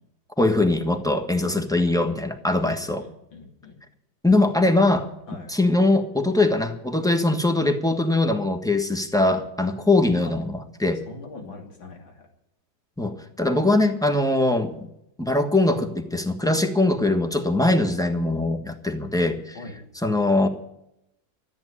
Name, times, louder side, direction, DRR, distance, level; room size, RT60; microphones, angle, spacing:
voice 1, 0.4-3.0 4.2-5.1 5.5-10.4 10.8-11.0 13.0-14.9 15.2-19.6 20.0-20.5, left 2 dB, ahead, 5 dB, 1.1 m, -21 dB
voice 2, 2.6-3.8 5.3-5.5 11.1-12.3 19.6-19.8, left 3 dB, 90° left, 2 dB, 3.5 m, -42 dB
13.5 x 8.9 x 9.9 m, 0.80 s
omnidirectional pair, 2.1 m